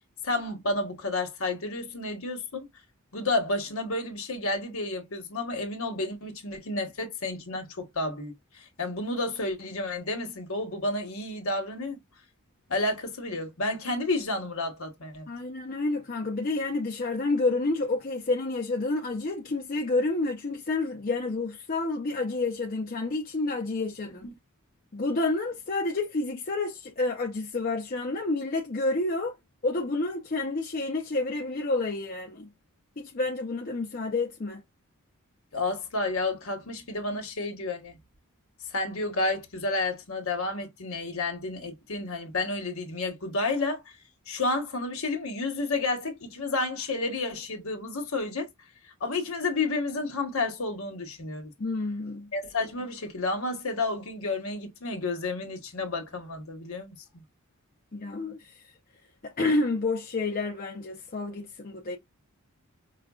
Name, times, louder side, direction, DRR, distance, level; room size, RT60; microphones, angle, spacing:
voice 1, 0.2-2.7 3.1-8.3 8.8-12.0 12.7-15.3 24.2-24.4 35.5-38.0 38.7-43.8 44.3-48.5 49.0-51.5 52.3-57.2, left 2 dB, 65° left, 1.1 m, -31 dB
voice 2, 15.3-24.3 24.9-29.3 29.6-32.5 33.0-34.6 51.6-52.3 57.9-58.5 59.2-62.0, left 3 dB, 40° left, 0.6 m, -29 dB
5.0 x 2.2 x 2.3 m
head